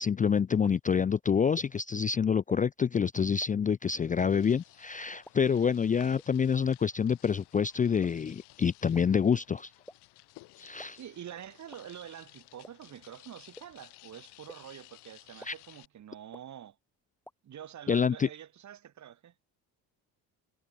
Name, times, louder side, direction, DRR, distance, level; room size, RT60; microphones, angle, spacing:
voice 1, 0.0-9.7 10.6-11.0 15.5-15.6 17.9-18.3, left 6 dB, 20° left, 0.4 m, -27 dB
sound 1, 0.6-0.7 1.6-1.7 2.5-2.6 3.4-3.5 4.3-4.4 5.3-5.4 6.2-6.3 7.1-7.2 8.0-8.1 8.9-9.0 9.9-10.0 10.8-10.9 11.7-11.8 12.6-12.7 13.6-13.7 14.5-14.6 15.4-15.5 16.3-16.4 17.3-17.4, left 1 dB, 5° left, 1.4 m, -47 dB
sound 2, 3.9-15.9, left 21 dB, 85° left, 6.6 m, -57 dB
voice 2, 11.0-16.8 17.4-19.5, right 10 dB, 45° right, 1.3 m, -47 dB
supercardioid pair, 90°, 39 cm